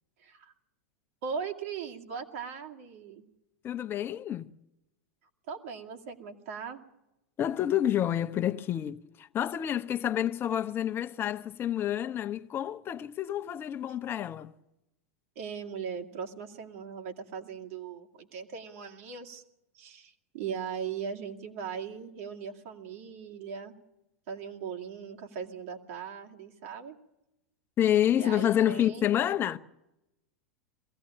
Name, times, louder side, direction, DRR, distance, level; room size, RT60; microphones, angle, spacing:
voice 1, 0.2-0.5 1.2-3.2 5.5-6.8 15.4-19.4 19.7-23.7 24.3-27.0 28.1-29.1, right 6 dB, 60° right, 2.4 m, -39 dB
voice 2, 3.6-4.5 7.4-14.5 27.8-29.6, left 11 dB, 30° left, 0.9 m, -28 dB
22.0 x 16.0 x 8.8 m
hypercardioid pair, 95°, 8 cm